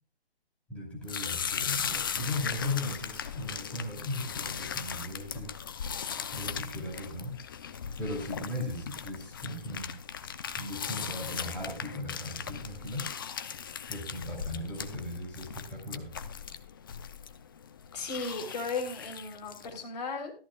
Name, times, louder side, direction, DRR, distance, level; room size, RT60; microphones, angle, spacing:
voice 1, 0.7-5.5 6.3-7.4 8.0-9.9 10.6-13.1 13.9-16.2, left 1 dB, 5° left, -3 dB, 2.7 m, -37 dB
sound 1, 1.0-19.8, left 7 dB, 20° left, 0.4 m, -38 dB
voice 2, 17.9-20.3, left 4 dB, 40° left, 2 dB, 3.5 m, -35 dB
14.0 x 13.5 x 2.3 m, 0.37 s
hypercardioid pair, 150°, 31 cm